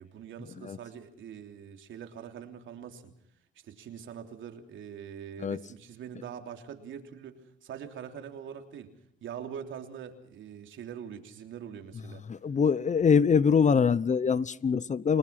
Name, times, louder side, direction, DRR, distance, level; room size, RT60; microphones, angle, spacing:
voice 1, 0.0-3.1 3.5-8.9 9.2-12.2, right 8 dB, 75° right, 5 dB, 3.4 m, -43 dB
voice 2, 12.3-15.2, left 6 dB, 35° left, 18 dB, 0.9 m, -24 dB
30.0 x 19.5 x 5.9 m, 0.69 s
cardioid pair, 90°, 20 cm